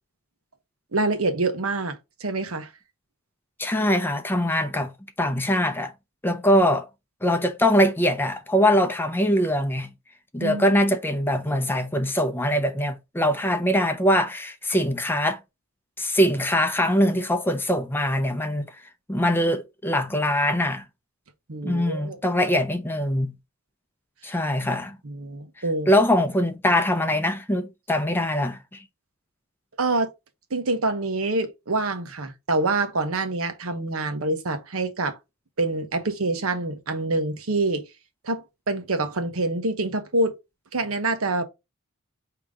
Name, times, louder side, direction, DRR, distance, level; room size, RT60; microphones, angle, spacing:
voice 1, 0.9-2.7 10.4-10.8 21.5-22.2 25.0-25.9 29.8-30.1 30.5-35.2 35.6-37.9 38.2-40.4 40.7-41.4, right 2 dB, 85° right, 1.0 m, -26 dB
voice 2, 3.6-4.9 5.2-5.9 6.2-6.9 7.2-9.9 10.3-15.4 16.0-18.7 19.1-20.8 21.6-23.3 24.2-25.0 25.9-28.6, equal, 10° left, 0.6 m, -22 dB
5.0 x 2.9 x 3.5 m
head